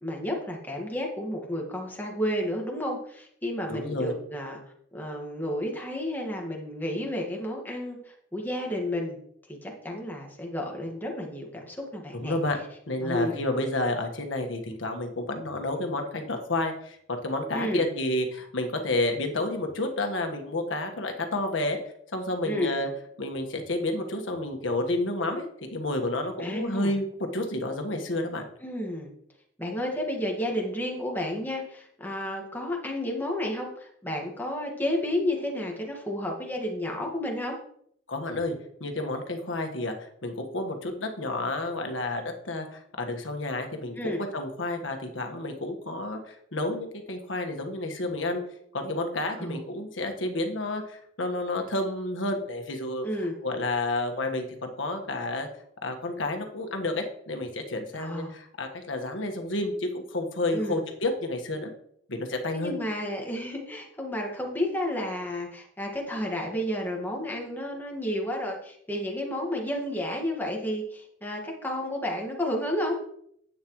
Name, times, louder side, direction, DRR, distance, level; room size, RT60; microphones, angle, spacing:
voice 1, 0.0-4.6 4.9-9.2 9.6-12.4 13.0-13.4 17.5-17.9 22.4-22.8 26.4-26.9 28.6-29.1 29.6-37.6 44.0-44.2 49.4-49.6 53.0-53.3 58.0-58.3 60.5-60.8 62.5-73.0, left 1 dB, 10° left, 0 dB, 1.8 m, -31 dB
voice 2, 3.7-4.1 12.1-12.6 12.9-21.8 22.1-22.9 23.2-27.1 27.3-28.4 38.1-38.5 38.8-48.4 48.7-55.5 55.8-61.7 62.1-62.7, left 2 dB, 85° left, 4 dB, 1.5 m, -30 dB
11.0 x 8.6 x 3.1 m, 0.68 s
head